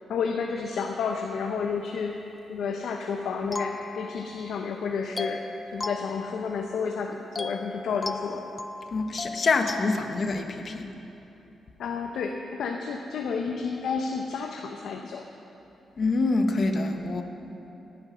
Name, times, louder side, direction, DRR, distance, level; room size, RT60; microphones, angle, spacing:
voice 1, 0.1-2.2 2.5-5.4 5.7-8.4 11.8-15.2, left 5 dB, 80° left, 3 dB, 0.9 m, -31 dB
sound 1, 3.5-4.6 5.2-6.9 7.4-10.0, left 3 dB, 25° left, 0.6 m, -37 dB
voice 2, 8.9-10.9 16.0-17.2, left 3 dB, 50° left, 6 dB, 1.2 m, -26 dB
17.5 x 9.7 x 6.2 m, 2.9 s
cardioid pair, 95°, 0 cm